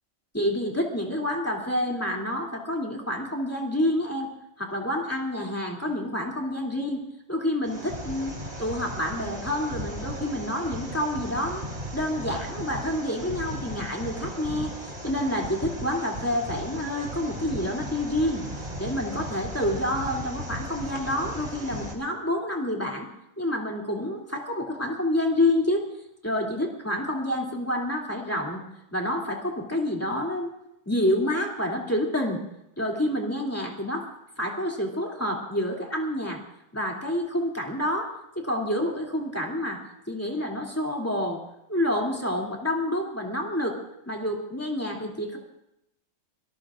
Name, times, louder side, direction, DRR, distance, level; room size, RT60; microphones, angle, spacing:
voice 1, 0.3-4.3 4.6-7.0 7.3-8.3 8.6-11.6 11.9-14.7 15.0-18.4 18.8-23.1 23.4-25.8 26.2-28.6 28.9-30.5 30.9-32.4 32.8-34.0 34.4-36.4 36.7-38.1 38.3-39.8 40.1-41.4 41.7-43.7 44.1-45.4, left 1 dB, 10° left, -1 dB, 2.7 m, -28 dB
sound 1, 7.6-21.9, right 1 dB, 35° right, 2.9 m, -36 dB
26.5 x 19.5 x 2.5 m, 0.82 s
omnidirectional pair, 1.4 m